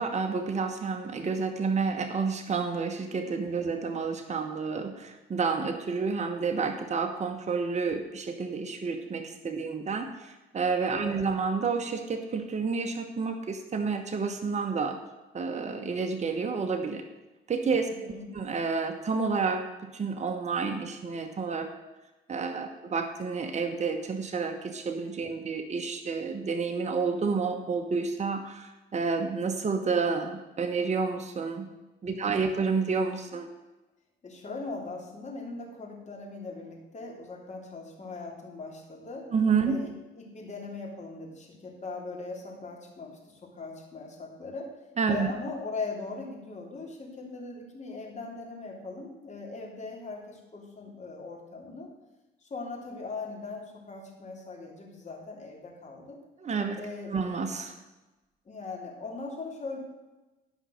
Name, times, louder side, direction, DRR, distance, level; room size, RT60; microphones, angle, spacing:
voice 1, 0.0-15.0 15.3-17.0 17.5-21.7 22.3-31.7 32.0-33.5 39.3-39.8 45.0-45.3 56.4-56.8 57.1-57.7, right 5 dB, 35° right, 5 dB, 1.1 m, -30 dB
voice 2, 18.1-18.4 32.2-32.3 34.2-39.3 39.6-44.7 45.1-51.9 52.4-56.2 56.8-57.1 58.4-59.8, left 3 dB, 35° left, -1 dB, 3.1 m, -40 dB
12.0 x 5.6 x 6.4 m, 1.1 s
cardioid pair, 90°, 20 cm